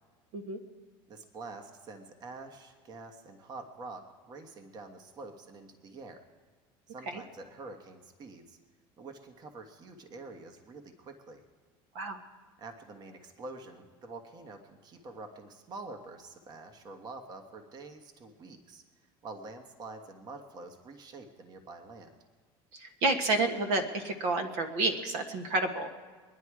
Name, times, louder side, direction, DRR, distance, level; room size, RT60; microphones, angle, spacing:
voice 1, 1.1-6.2 6.9-8.6 9.0-11.4 12.6-18.8 19.2-22.1, right 3 dB, 35° right, 5 dB, 1.3 m, -46 dB
voice 2, 22.7-25.9, right 2 dB, 70° right, 6 dB, 1.4 m, -30 dB
23.5 x 10.0 x 4.8 m, 1.4 s
cardioid pair, 130°, 11 cm